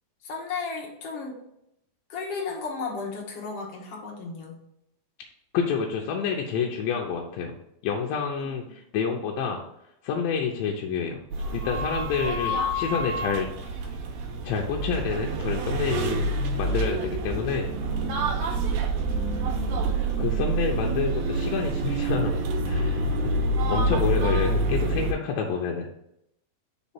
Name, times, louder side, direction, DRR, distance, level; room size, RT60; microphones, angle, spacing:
voice 1, 0.2-1.4 2.1-4.6 8.6-8.7 19.1-19.9, left 4 dB, 60° left, -2 dB, 1.7 m, -35 dB
voice 2, 5.5-7.5 7.8-9.6 10.0-13.5 14.4-16.3 16.6-17.7 20.2-22.3 22.7-23.4 23.7-25.9, left 6 dB, 80° left, 0 dB, 2.3 m, -28 dB
sound 1, 11.3-25.1, right 2 dB, 85° right, 2.6 m, -27 dB
5.2 x 4.1 x 5.5 m, 0.78 s
omnidirectional pair, 4.2 m